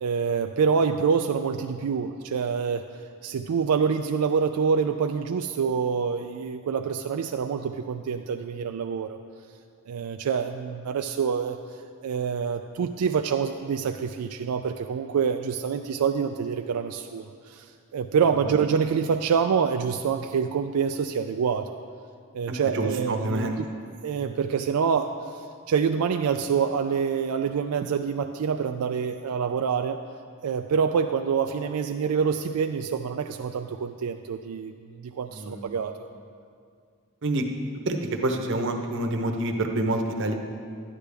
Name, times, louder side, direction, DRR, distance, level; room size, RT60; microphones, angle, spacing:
voice 1, 0.0-2.8 3.2-9.2 9.9-11.6 12.0-21.7 22.3-23.7 24.0-30.0 30.4-34.7 35.0-35.9, right 6 dB, 90° right, 6 dB, 0.4 m, -26 dB
voice 2, 22.5-23.6 35.3-35.6 37.2-37.5 37.9-40.3, right 1 dB, 55° right, 4 dB, 0.9 m, -27 dB
12.0 x 9.8 x 3.4 m, 2.2 s
head